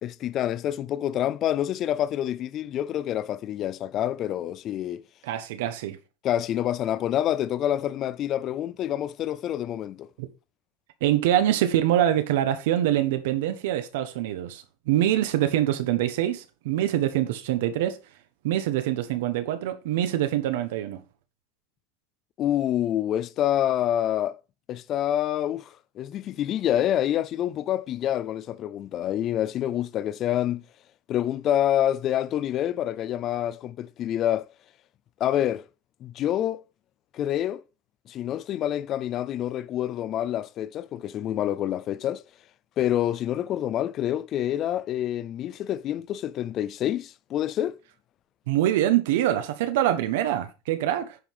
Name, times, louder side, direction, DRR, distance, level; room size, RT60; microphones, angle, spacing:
voice 1, 0.0-5.0 6.2-10.1 22.4-24.4 24.7-30.6 31.1-34.5 35.2-35.6 36.0-36.6 37.1-37.6 38.1-42.2 42.8-47.8, left 11 dB, 30° left, 0.4 m, -27 dB
voice 2, 5.2-6.0 10.2-10.3 11.0-18.0 18.4-21.0 48.5-51.2, right 12 dB, 70° right, 1.2 m, -24 dB
10.0 x 5.6 x 4.9 m
supercardioid pair, 175°, 0 cm